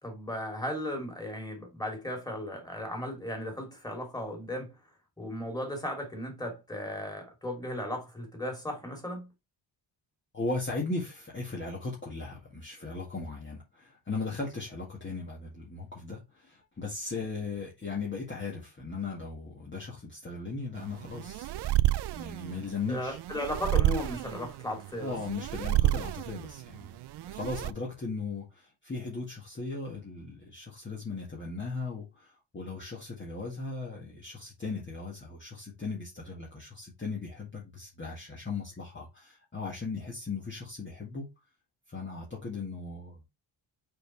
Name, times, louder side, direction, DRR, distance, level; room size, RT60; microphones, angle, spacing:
voice 1, 0.0-4.8 5.2-9.3 22.9-25.1, left 1 dB, 10° left, 2.8 m, -36 dB
voice 2, 10.3-21.8 22.1-23.2 25.0-26.9 27.2-41.3 41.9-43.2, left 3 dB, 25° left, 1.9 m, -37 dB
sound 1, 20.8-27.7, right 15 dB, 60° right, 0.5 m, -30 dB
6.6 x 4.5 x 3.3 m
cardioid pair, 115°, 48 cm